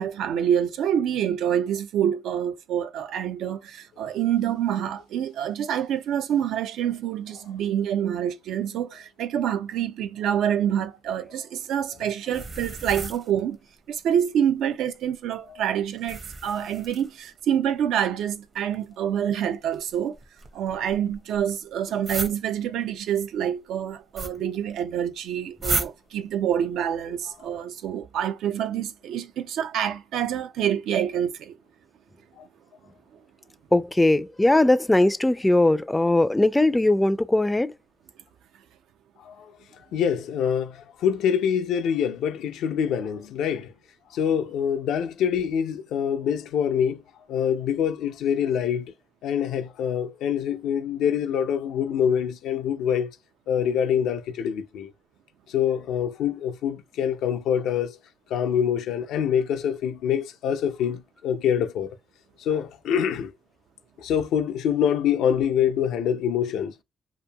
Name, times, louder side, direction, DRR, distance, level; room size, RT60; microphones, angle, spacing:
voice 1, 0.0-13.6 13.9-20.2 20.5-31.6, right 9 dB, 80° right, 0.4 m, -27 dB
sound 1, 12.3-13.5 16.0-17.4 18.5-18.8 19.7-21.5 22.0-22.4 24.1-24.4 24.7-24.8 25.6-25.9, right 3 dB, 40° right, 0.7 m, -32 dB
voice 2, 33.7-37.7, left 2 dB, 10° left, 0.3 m, -20 dB
voice 3, 39.9-43.7 44.1-47.0 47.3-48.9 49.2-53.1 53.5-54.9 55.5-58.0 58.3-62.0 62.4-63.3 64.0-66.7, left 8 dB, 85° left, 0.4 m, -25 dB
2.8 x 2.5 x 2.2 m
cardioid pair, 90°, 0 cm